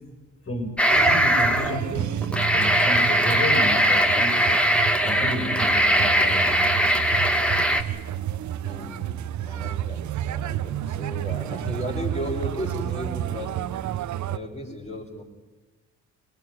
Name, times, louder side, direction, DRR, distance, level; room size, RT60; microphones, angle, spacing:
voice 1, 0.4-4.3 5.0-6.6, equal, 45° left, 5 dB, 7.0 m, -32 dB
sound 1, 0.8-1.8 2.2-7.8, equal, 5° left, 2.4 m, -20 dB
sound 2, 0.9-14.4, right 11 dB, 70° right, 1.1 m, -31 dB
voice 2, 8.6-15.2, left 1 dB, 20° left, -6 dB, 6.1 m, -35 dB
24.0 x 20.0 x 9.6 m, 1.2 s
cardioid pair, 90°, 30 cm